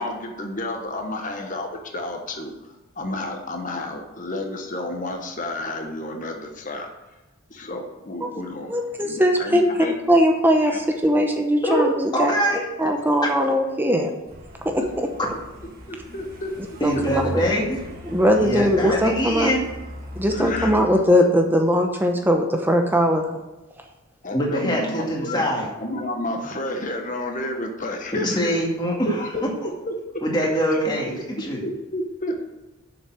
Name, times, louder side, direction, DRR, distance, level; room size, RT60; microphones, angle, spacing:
voice 1, 0.0-2.5 3.0-6.9 7.5-8.7 9.0-9.9 10.7-10.8 14.8-14.9 15.9-16.5 18.5-18.7 20.3-20.8 24.2-25.4 25.8-28.6 29.1-29.4 29.9-30.0 30.7-30.8 31.4-32.5, left 1 dB, 35° left, 3 dB, 1.2 m, -31 dB
voice 2, 8.7-12.3 12.8-14.1 14.6-15.1 16.8-17.4 18.0-19.5 20.1-23.4, equal, 10° right, 3 dB, 0.8 m, -20 dB
voice 3, 12.1-12.6 16.8-17.8 18.3-19.7 24.3-25.7 28.1-29.5 30.2-31.6, equal, 20° left, -2 dB, 2.1 m, -24 dB
Truck, 14.3-20.7, equal, 40° right, 1.7 m, -38 dB
7.2 x 6.7 x 8.0 m, 1.0 s
head